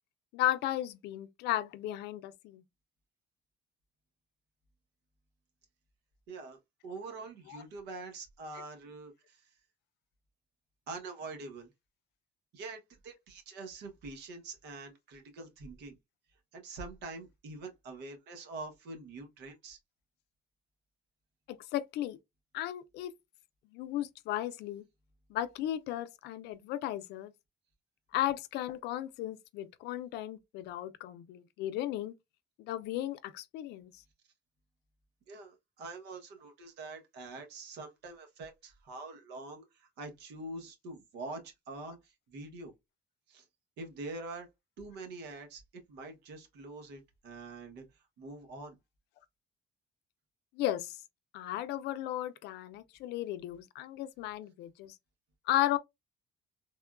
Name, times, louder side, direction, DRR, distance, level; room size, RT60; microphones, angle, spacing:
voice 1, 0.3-2.6 7.5-7.6 21.5-22.2 22.5-23.1 23.7-24.8 25.3-27.3 28.1-32.1 32.6-33.9 50.5-51.0 51.3-55.0 55.5-55.8, left 13 dB, 80° left, 0.4 m, -35 dB
voice 2, 6.3-9.4 10.9-11.7 12.5-16.0 16.5-19.8 35.3-42.7 43.3-43.4 43.8-44.5 44.8-48.8, right 3 dB, 80° right, 1.1 m, -45 dB
3.5 x 2.2 x 2.3 m
cardioid pair, 110°, 17 cm